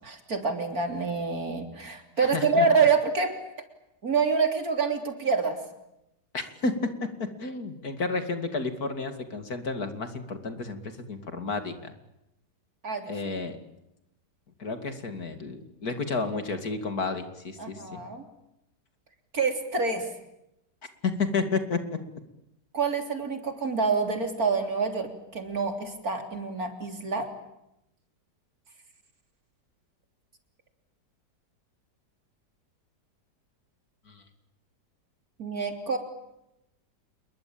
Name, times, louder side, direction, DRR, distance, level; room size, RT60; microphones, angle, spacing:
voice 1, 0.0-3.4 4.0-5.6 12.8-13.1 17.6-18.2 19.3-20.1 22.7-27.3 35.4-36.0, right 4 dB, 55° right, 6 dB, 3.9 m, -27 dB
voice 2, 2.2-2.7 6.3-6.7 7.4-11.9 13.1-13.6 14.6-18.0 21.0-21.8 34.1-34.2, left 4 dB, 60° left, 8 dB, 3.0 m, -31 dB
28.0 x 22.5 x 8.7 m, 0.86 s
omnidirectional pair, 1.8 m